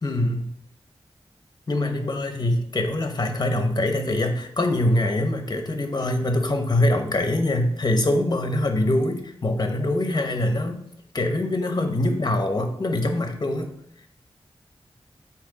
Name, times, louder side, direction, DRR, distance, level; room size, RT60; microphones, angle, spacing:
voice 1, 0.0-0.5 1.7-10.8 11.1-13.7, left 1 dB, 40° left, 5 dB, 0.8 m, -24 dB
8.4 x 2.9 x 3.9 m, 0.70 s
wide cardioid pair, 95°, 10 cm